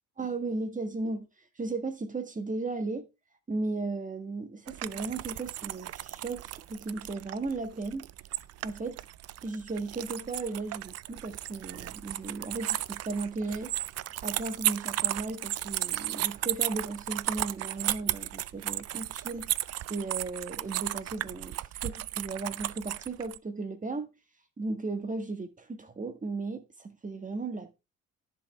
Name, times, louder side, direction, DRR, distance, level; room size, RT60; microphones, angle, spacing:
voice 1, 0.2-1.2 1.6-3.1 3.5-8.1 8.6-9.0 9.4-13.7 14.2-19.5 19.9-21.6 21.8-24.1 24.6-27.8, right 3 dB, 25° right, 1.7 m, -35 dB
sound 1, 4.7-23.4, right 14 dB, 55° right, 0.4 m, -35 dB
10.5 x 5.6 x 3.5 m
cardioid pair, 90°, 30 cm